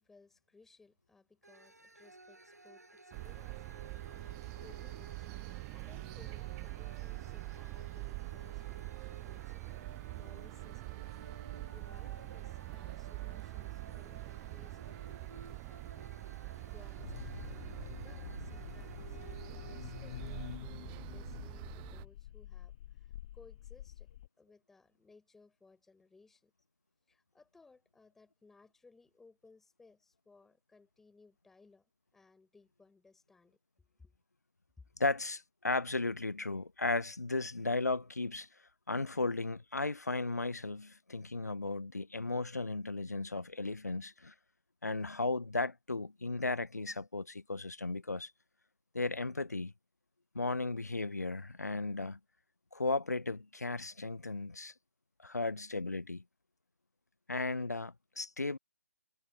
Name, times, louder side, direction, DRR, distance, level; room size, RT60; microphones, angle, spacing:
voice 1, 0.0-9.8 10.1-17.4 18.0-24.1 24.4-26.5 27.1-34.1 34.8-34.9, left 3 dB, 5° left, 5.7 m, -63 dB
sound 1, 1.4-20.6, right 2 dB, 75° right, 5.6 m, -56 dB
sound 2, 3.1-22.1, right 36 dB, 15° right, 0.4 m, -44 dB
sound 3, 17.0-24.3, left 13 dB, 30° left, 1.5 m, -47 dB
voice 2, 35.0-38.5 38.9-44.3 44.8-48.3 48.9-49.7 50.3-52.2 52.7-54.7 55.2-56.2 57.3-58.6, left 3 dB, 75° left, 0.8 m, -35 dB
figure-of-eight pair, 145°, 9 cm